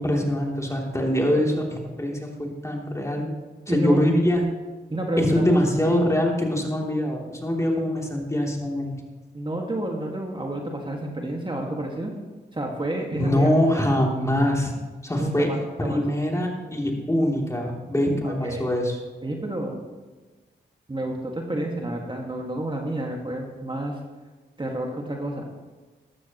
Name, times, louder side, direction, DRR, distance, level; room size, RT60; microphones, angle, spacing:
voice 1, 0.0-3.2 3.7-4.4 5.2-9.0 13.1-14.7 15.0-15.5 15.8-19.0, left 1 dB, 15° left, -1 dB, 3.1 m, -23 dB
voice 2, 3.7-4.0 4.9-5.4 9.3-12.1 12.5-13.5 15.2-16.0 18.2-18.6 19.2-19.8 20.9-24.0 24.6-25.4, right 1 dB, 25° right, 1 dB, 1.9 m, -30 dB
13.5 x 12.5 x 3.1 m, 1.3 s
cardioid pair, 45°, 18 cm